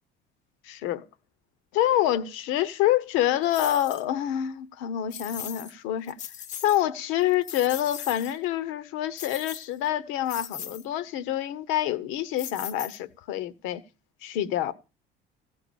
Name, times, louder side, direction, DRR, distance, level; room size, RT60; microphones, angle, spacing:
voice 1, 0.7-1.0 1.7-6.2 6.6-13.8 14.2-14.7, left 12 dB, 80° left, 0.9 m, -27 dB
sound 1, 3.5-4.0 5.1-5.7 6.1-6.8 7.2-8.4 9.2-9.9 10.3-10.8 12.4-13.2, left 9 dB, 35° left, 0.6 m, -39 dB
15.5 x 5.9 x 6.9 m
cardioid pair, 155°, 20 cm